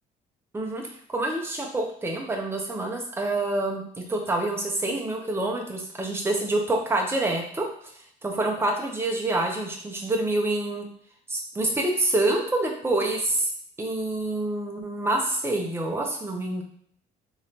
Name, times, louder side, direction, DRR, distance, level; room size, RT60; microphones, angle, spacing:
voice 1, 1.1-7.6 8.2-10.9 11.3-13.5 13.8-16.6, right 2 dB, 15° right, 0 dB, 0.8 m, -27 dB
3.6 x 3.2 x 2.9 m, 0.63 s
cardioid pair, 110°, 17 cm